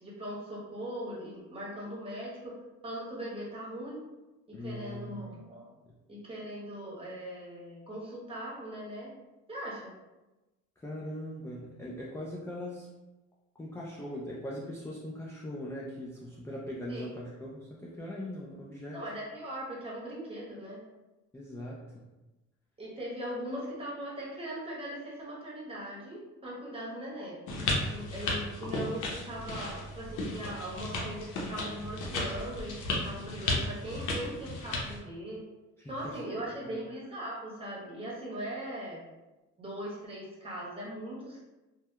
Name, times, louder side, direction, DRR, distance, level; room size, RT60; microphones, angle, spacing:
voice 1, 0.0-2.5 2.8-4.0 4.5-5.7 6.1-9.1 9.5-9.9 16.9-17.1 18.9-20.8 22.8-27.4 27.8-35.4 35.9-39.0 39.6-41.4, equal, 20° right, -6 dB, 1.0 m, -40 dB
voice 2, 4.5-5.2 10.8-12.9 13.6-19.0 21.3-22.0 35.8-36.8, left 1 dB, 10° left, -4 dB, 0.3 m, -40 dB
sound 1, 27.5-35.0, left 2 dB, 85° left, 0.6 m, -34 dB
2.7 x 2.1 x 2.2 m, 1.1 s
cardioid pair, 90°, 30 cm